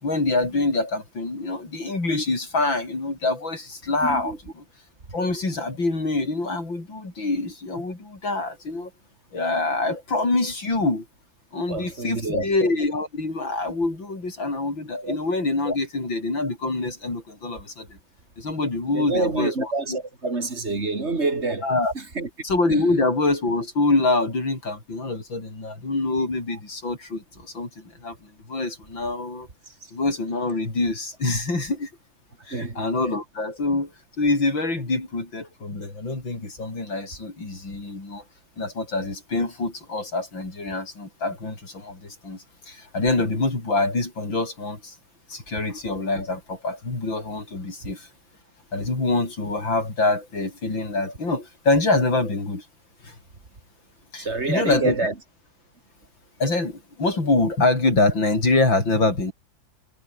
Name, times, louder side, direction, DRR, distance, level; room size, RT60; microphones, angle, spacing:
voice 1, 0.0-4.3 5.1-8.9 9.3-11.1 11.5-18.0 18.4-20.0 21.6-21.9 22.4-28.2 28.5-29.5 29.9-31.9 32.5-33.9 34.2-38.2 38.6-45.0 45.3-48.1 48.7-52.7 53.0-53.2 54.1-55.0 56.4-59.3, left 2 dB, 75° left, 7.1 m, -25 dB
voice 2, 4.0-4.4 11.7-12.5 15.0-15.2 18.9-21.7 21.9-22.3 22.7-22.8 26.5-26.6 29.8-29.9 32.5-32.9 47.8-47.9 54.2-55.1, right 3 dB, 35° right, 3.1 m, -27 dB
omnidirectional pair, 2.1 m